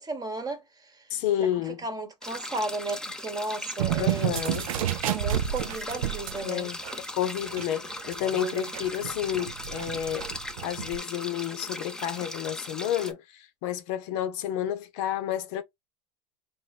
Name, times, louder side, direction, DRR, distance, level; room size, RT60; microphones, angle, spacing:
voice 1, 0.0-1.1 1.8-4.3 5.0-6.7, right 2 dB, 20° right, 1.0 m, -34 dB
voice 2, 1.1-1.8 4.0-4.7 6.4-6.8 7.1-10.3 10.6-15.6, left 11 dB, 65° left, 0.7 m, -30 dB
sound 1, 2.2-13.1, left 1 dB, 5° left, 0.6 m, -39 dB
sound 2, 3.8-6.5 6.8-7.0 7.4-11.0, right 12 dB, 85° right, 0.5 m, -31 dB
3.6 x 2.5 x 4.0 m
hypercardioid pair, 100°, 17 cm